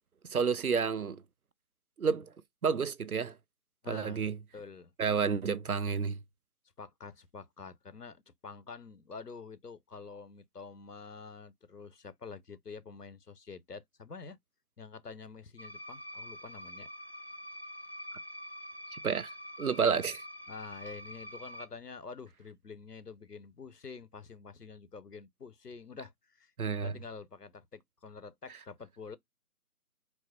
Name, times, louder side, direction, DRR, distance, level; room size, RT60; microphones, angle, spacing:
voice 1, 0.3-1.2 2.0-2.3 2.6-3.3 3.9-4.4 5.0-6.2 18.9-19.3 19.6-20.2 26.6-26.9, right 6 dB, 65° right, 0.5 m, -30 dB
voice 2, 3.8-4.9 6.8-14.4 14.8-16.9 20.5-26.5 26.8-29.2, left 5 dB, 75° left, 1.0 m, -47 dB
sound 1, 15.6-21.7, equal, 40° left, 0.5 m, -45 dB
4.5 x 2.0 x 4.3 m
figure-of-eight pair, 165°, 47 cm